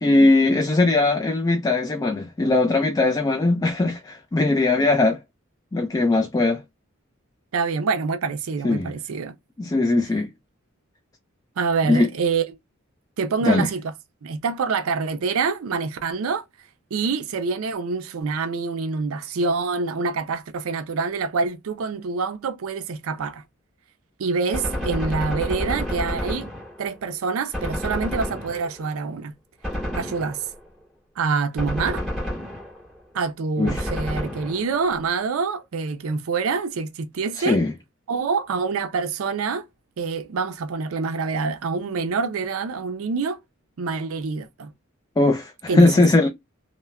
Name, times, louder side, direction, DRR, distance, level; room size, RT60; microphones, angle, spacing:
voice 1, 0.0-5.2 5.7-6.6 8.6-8.9 9.6-10.3 11.9-12.1 13.4-13.7 33.6-33.9 37.4-37.7 45.2-46.3, left 2 dB, 20° left, 0.3 m, -19 dB
voice 2, 7.5-9.3 11.6-12.4 13.2-13.8 14.2-16.4 16.9-23.4 24.2-26.5 26.8-29.3 29.9-30.5 31.2-32.1 33.1-37.6 38.1-39.7 40.0-43.4 43.8-44.7 45.7-45.9, right 4 dB, 75° right, 0.4 m, -26 dB
Gunshot gunfire, 24.5-27.0 27.5-28.9 29.6-30.7 31.6-33.0 33.7-34.9, equal, ahead, 1.9 m, -29 dB
3.2 x 2.1 x 2.2 m
head